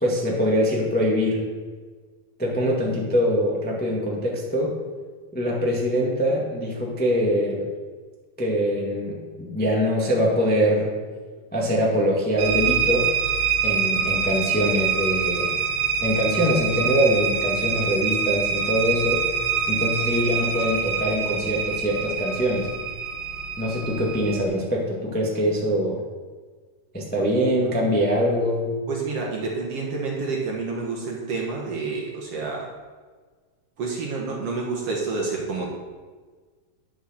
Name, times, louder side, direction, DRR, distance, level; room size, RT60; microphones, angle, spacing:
voice 1, 0.0-1.4 2.4-4.8 5.3-7.7 8.4-10.9 11.5-13.1 13.6-15.5 16.0-19.2 19.7-22.7 23.6-26.0 26.9-28.7, equal, 5° left, -3 dB, 0.8 m, -23 dB
sound 1, 12.4-24.4, right 6 dB, 85° right, 3.1 m, -25 dB
voice 2, 28.9-32.7 33.8-35.7, right 4 dB, 60° right, -1 dB, 1.9 m, -29 dB
9.8 x 6.4 x 6.4 m, 1.4 s
omnidirectional pair, 3.9 m